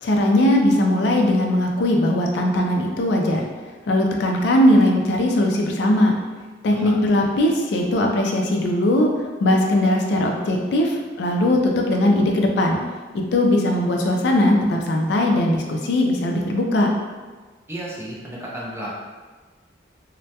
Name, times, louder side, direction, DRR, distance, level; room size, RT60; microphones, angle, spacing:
voice 1, 0.0-3.4 3.9-6.1 6.6-12.8 13.3-16.9, left 1 dB, 70° left, 1 dB, 0.3 m, -19 dB
voice 2, 17.7-18.9, right 1 dB, 15° right, -5 dB, 0.4 m, -33 dB
2.2 x 2.1 x 2.7 m, 1.3 s
head